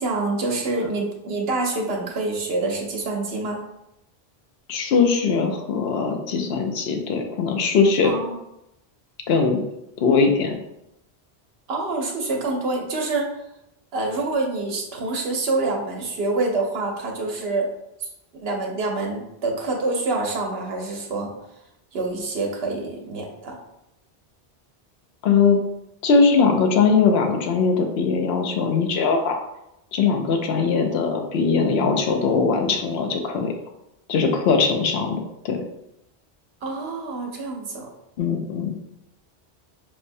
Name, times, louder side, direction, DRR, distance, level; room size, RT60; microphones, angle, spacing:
voice 1, 0.0-3.6 8.0-8.3 11.7-13.3 13.9-17.7 18.0-18.1 18.4-21.3 21.9-23.6 36.6-37.9, right 3 dB, 70° right, 1 dB, 0.9 m, -26 dB
voice 2, 4.7-8.1 9.3-9.6 10.0-10.5 25.2-25.6 26.0-29.4 29.9-33.5 34.1-35.6 38.2-38.8, left 5 dB, 75° left, 4 dB, 0.8 m, -20 dB
5.2 x 2.1 x 2.6 m, 0.85 s
omnidirectional pair, 1.1 m